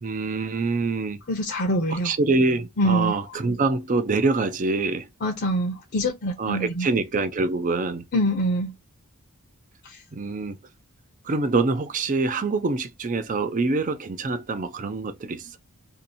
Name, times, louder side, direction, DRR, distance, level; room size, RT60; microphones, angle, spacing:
voice 1, 0.0-1.2 1.9-5.1 6.4-8.0 10.1-10.6 11.2-15.6, right 3 dB, 35° right, 0.5 m, -25 dB
voice 2, 1.3-2.1 2.8-3.1 5.2-6.9 8.1-8.7 9.8-10.0, equal, 45° left, 0.7 m, -24 dB
2.7 x 2.6 x 4.0 m
head